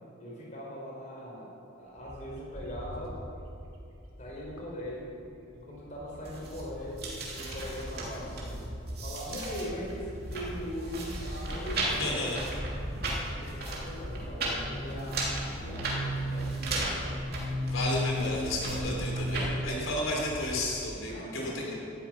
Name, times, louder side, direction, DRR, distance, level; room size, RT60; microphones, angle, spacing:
voice 1, 0.2-1.5 1.8-3.2 4.2-5.1 5.5-8.8 9.0-12.4 13.1-17.3 18.7-19.9 21.0-21.7, equal, 35° left, -3 dB, 4.0 m, -41 dB
Bird, 2.0-6.4 6.8-21.0, equal, 80° right, 3.0 m, -46 dB
sound 1, 6.2-19.5, right 1 dB, 50° right, 3.0 m, -34 dB
voice 2, 12.0-12.4 17.6-21.7, left 1 dB, 80° left, -2 dB, 4.0 m, -33 dB
18.0 x 12.5 x 6.0 m, 2.6 s
head